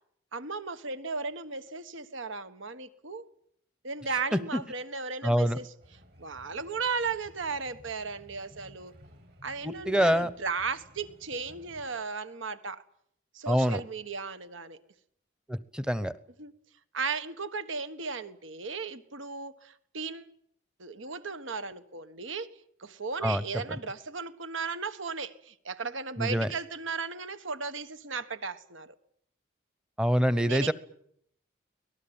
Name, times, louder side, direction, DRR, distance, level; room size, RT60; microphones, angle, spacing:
voice 1, 0.3-3.3 3.8-5.7 6.2-8.9 9.4-12.8 13.3-14.8 16.4-16.5 16.9-20.3 20.8-22.5 22.8-29.0 30.4-30.7, right 4 dB, 75° right, 12 dB, 1.5 m, -36 dB
voice 2, 5.2-5.6 9.6-10.3 13.5-13.8 15.5-16.1 23.2-23.4 26.2-26.5 30.0-30.7, equal, 5° right, 15 dB, 0.9 m, -25 dB
sound 1, 5.8-11.9, equal, 55° right, 6.0 m, -55 dB
24.5 x 19.0 x 9.0 m, 0.70 s
head